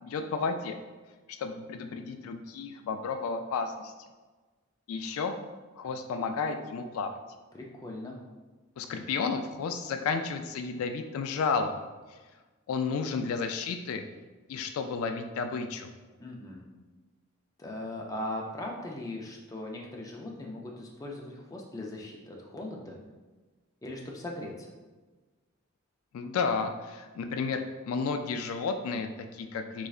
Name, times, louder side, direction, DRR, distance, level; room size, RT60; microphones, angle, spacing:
voice 1, 0.0-0.7 1.4-3.9 4.9-5.3 5.8-7.2 8.8-11.8 12.1-12.2 12.7-14.0 14.5-15.9 26.1-29.9, left 5 dB, 80° left, 8 dB, 0.3 m, -32 dB
voice 2, 7.5-8.2 16.2-16.6 17.6-23.0 23.8-24.7, left 1 dB, 15° left, -1 dB, 0.4 m, -39 dB
3.7 x 3.2 x 2.4 m, 1.3 s
head